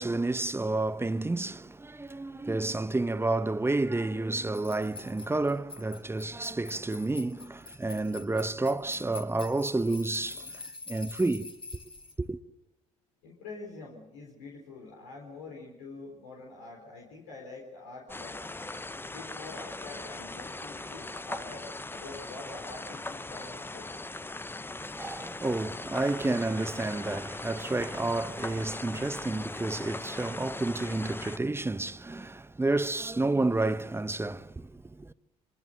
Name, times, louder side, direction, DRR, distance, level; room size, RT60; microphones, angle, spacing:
voice 1, 0.0-10.6 10.9-11.5 12.2-12.4 24.8-35.1, right 2 dB, 15° right, 0.9 m, -30 dB
sound 1, 4.5-12.1, left 3 dB, 35° left, 4.3 m, -45 dB
voice 2, 13.2-18.5 19.1-23.9, left 3 dB, 75° left, 4.4 m, -46 dB
sound 2, 18.1-31.4, left 2 dB, 15° left, 0.8 m, -40 dB
26.0 x 25.0 x 6.7 m
figure-of-eight pair, 50°, 16 cm